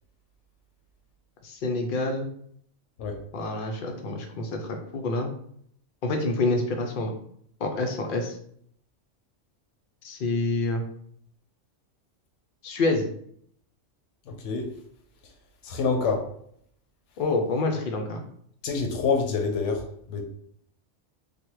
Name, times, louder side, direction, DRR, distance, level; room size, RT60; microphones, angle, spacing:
voice 1, 1.4-2.3 3.3-5.3 6.0-7.1 7.6-8.4 10.0-10.8 12.6-13.1 17.2-18.2, left 2 dB, 60° left, 4 dB, 0.6 m, -27 dB
voice 2, 14.3-14.7 15.6-16.3 18.6-20.2, left 4 dB, 80° left, 3 dB, 0.9 m, -27 dB
3.4 x 2.2 x 3.0 m, 0.66 s
omnidirectional pair, 1.2 m